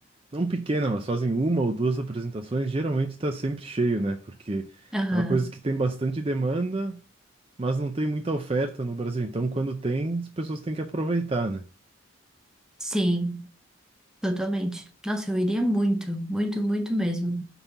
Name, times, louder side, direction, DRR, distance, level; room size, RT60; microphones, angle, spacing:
voice 1, 0.3-4.8 5.1-7.0 7.6-11.6, right 2 dB, 25° right, 0.5 m, -27 dB
voice 2, 4.9-5.4 12.8-13.5 14.2-17.4, equal, 5° right, 0.8 m, -26 dB
5.5 x 4.1 x 5.8 m
head